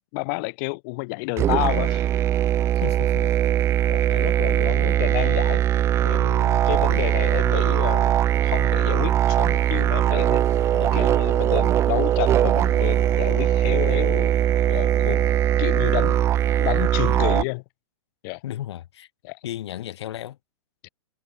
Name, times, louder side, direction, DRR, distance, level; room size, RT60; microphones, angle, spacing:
voice 1, 0.0-2.1 3.2-3.3 3.9-5.6 6.0-14.3 14.7-15.2 15.6-17.6 18.2-18.4 19.2-19.4 20.8-20.9, left 30 dB, 45° left, 1.8 m, -30 dB
sound 1, 1.4-17.4, right 11 dB, 20° right, 0.4 m, -20 dB
sound 2, 2.5-3.0 3.3-3.6 3.9-4.0 4.2-4.3 5.0-5.6 5.9-11.0 11.3-11.4 11.7-12.2 12.9-13.6, right 13 dB, 60° right, 2.0 m, -45 dB
voice 2, 2.7-3.3 4.1-4.3 4.9-5.3 6.9-7.1 10.7-11.2 13.7-13.9 14.6-14.7 15.0-15.6 18.4-19.1 19.4-20.4, left 12 dB, 65° left, 3.3 m, -36 dB
hypercardioid pair, 135°, 15 cm